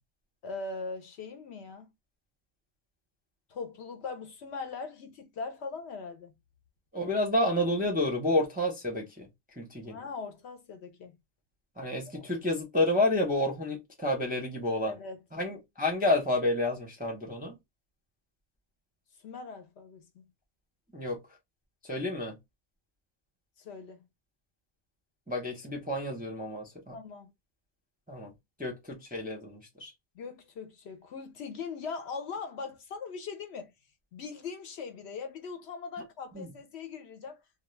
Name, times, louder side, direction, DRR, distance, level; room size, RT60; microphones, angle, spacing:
voice 1, 0.4-1.9 3.5-6.3 9.9-11.1 12.1-12.3 14.9-15.2 19.2-20.2 23.6-24.1 26.9-27.3 30.2-33.7 34.1-37.4, left 4 dB, 65° left, 0.8 m, -40 dB
voice 2, 6.9-9.3 9.6-10.0 11.8-14.9 15.3-17.6 20.9-21.2 21.8-22.3 25.3-26.9 28.1-28.3 28.6-29.9 36.3-36.5, left 1 dB, 10° right, 0.5 m, -30 dB
2.3 x 2.2 x 3.1 m
omnidirectional pair, 1.3 m